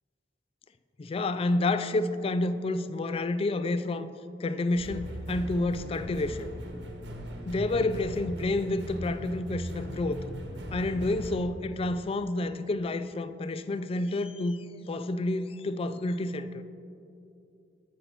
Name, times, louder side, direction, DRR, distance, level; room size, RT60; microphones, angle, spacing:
voice 1, 1.0-4.1 4.4-6.5 7.5-10.2 10.7-16.6, left 2 dB, 35° left, 0.3 m, -29 dB
sound 1, 4.8-11.3, equal, 75° right, 1.1 m, -39 dB
10.5 x 6.4 x 4.6 m
head